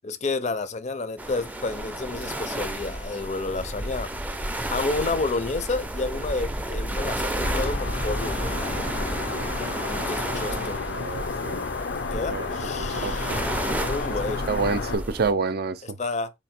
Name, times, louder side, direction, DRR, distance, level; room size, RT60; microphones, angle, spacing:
voice 1, 0.0-4.1 4.7-8.6 9.9-10.8 12.0-14.4 16.0-16.3, left 3 dB, 40° left, 0.6 m, -30 dB
sound 1, 1.2-15.3, right 1 dB, 10° right, 0.5 m, -31 dB
sound 2, 7.4-14.9, left 4 dB, 85° left, 0.7 m, -32 dB
voice 2, 10.4-11.6 12.3-12.5 13.0-13.4 14.5-16.0, right 4 dB, 60° right, 0.5 m, -28 dB
4.1 x 2.7 x 4.3 m
head